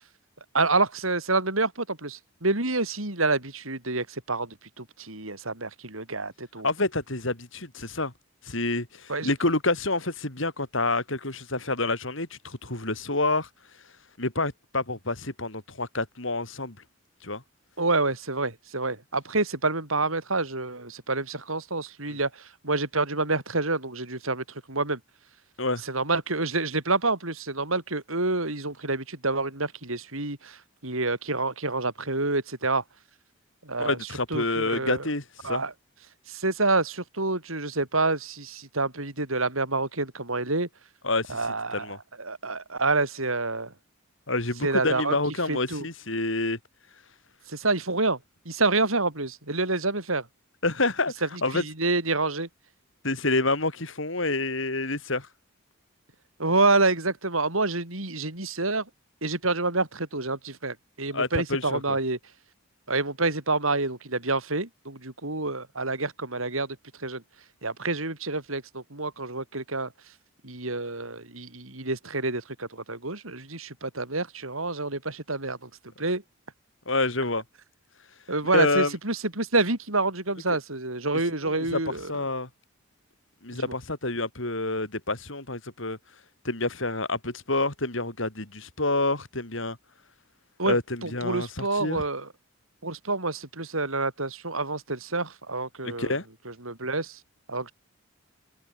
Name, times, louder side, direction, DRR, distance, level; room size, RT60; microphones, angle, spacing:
voice 1, 0.5-6.7 9.1-9.3 17.8-25.0 25.8-32.8 33.6-35.1 35.4-35.7 36.3-40.7 41.3-43.7 44.6-45.2 45.5-45.9 47.5-48.2 48.5-50.3 51.2-52.5 56.4-58.9 59.2-62.2 62.9-67.2 67.6-69.9 70.4-75.7 76.0-76.2 78.3-82.2 83.5-83.7 90.6-90.8 91.0-92.3 92.8-96.2 96.5-97.2 97.5-97.7, right 3 dB, 80° right, 5.5 m, -28 dB
voice 2, 6.6-8.1 8.4-13.5 14.2-16.8 17.2-17.4 22.1-22.2 25.6-25.8 33.8-35.6 41.0-41.4 41.7-42.0 44.3-46.6 50.6-51.1 51.4-51.6 53.0-55.3 61.1-62.0 76.9-77.4 78.5-78.9 81.4-81.8 82.1-82.5 83.4-86.0 86.4-89.8 90.7-92.0 95.8-96.2, left 2 dB, 65° left, 4.8 m, -28 dB
head